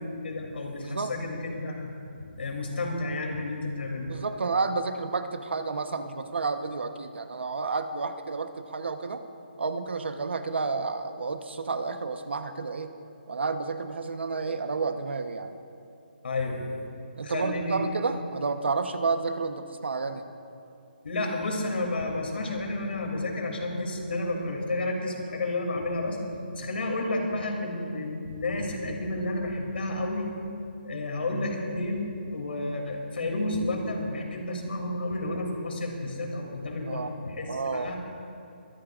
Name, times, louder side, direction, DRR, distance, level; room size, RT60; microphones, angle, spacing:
voice 1, 0.0-4.1 16.2-16.8 17.2-17.9 21.0-26.2 26.5-30.3 30.8-38.0, left 2 dB, 70° left, 1 dB, 3.1 m, -31 dB
voice 2, 0.8-1.1 4.1-9.2 9.6-12.9 13.3-15.6 17.2-20.2 36.9-37.1 37.5-37.9, right 4 dB, 80° right, 8 dB, 1.1 m, -30 dB
23.0 x 15.0 x 2.6 m, 2.7 s
hypercardioid pair, 165°, 6 cm